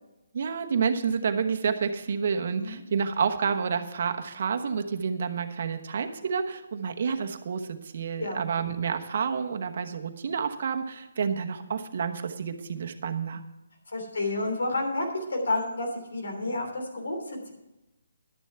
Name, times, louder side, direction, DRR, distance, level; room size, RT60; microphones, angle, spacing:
voice 1, 0.3-13.4, right 6 dB, 50° right, 6 dB, 1.1 m, -29 dB
voice 2, 13.9-17.5, left 2 dB, 80° left, 2 dB, 3.3 m, -30 dB
11.5 x 7.1 x 5.8 m, 0.96 s
hypercardioid pair, 160°, 0 cm